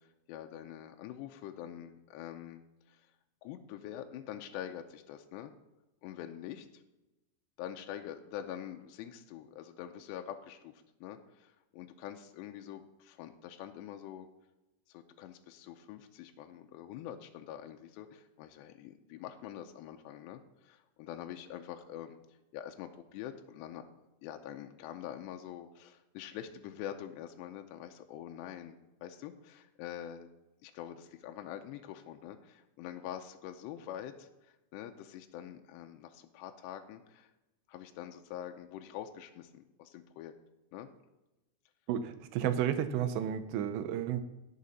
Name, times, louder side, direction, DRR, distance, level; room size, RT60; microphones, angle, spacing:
voice 1, 0.0-2.6 2.9-3.1 3.4-5.5 6.0-6.8 7.6-14.3 14.9-22.2 22.5-23.8 24.2-30.3 30.6-34.3 34.7-37.3 37.7-40.3 40.7-40.9 42.4-42.5, left 10 dB, 85° left, 5 dB, 2.8 m, -45 dB
voice 2, 41.9-44.2, right 10 dB, 85° right, 10 dB, 2.9 m, -32 dB
16.5 x 6.6 x 4.1 m, 0.99 s
omnidirectional pair, 5.0 m